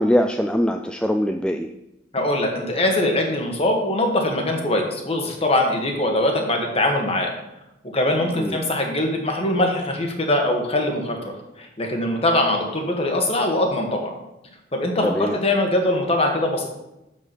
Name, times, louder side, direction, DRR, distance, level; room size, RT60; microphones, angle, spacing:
voice 1, 0.0-1.7 8.3-8.6 15.0-15.4, equal, 5° left, 5 dB, 0.3 m, -22 dB
voice 2, 2.1-7.3 7.9-11.2 11.6-14.1 14.7-16.7, left 1 dB, 30° left, 2 dB, 1.6 m, -22 dB
7.3 x 6.6 x 6.1 m, 0.92 s
head